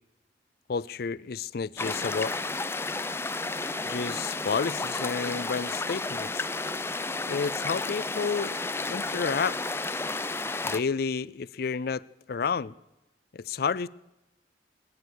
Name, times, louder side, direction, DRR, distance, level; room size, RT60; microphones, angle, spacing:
voice 1, 0.7-2.4 3.9-6.5 7.3-8.6 8.9-9.6 10.6-12.7 13.3-13.9, left 5 dB, 60° left, 21 dB, 0.4 m, -30 dB
sound 1, 1.8-10.8, left 3 dB, 15° left, 0.6 m, -32 dB
20.0 x 10.5 x 6.3 m, 0.95 s
head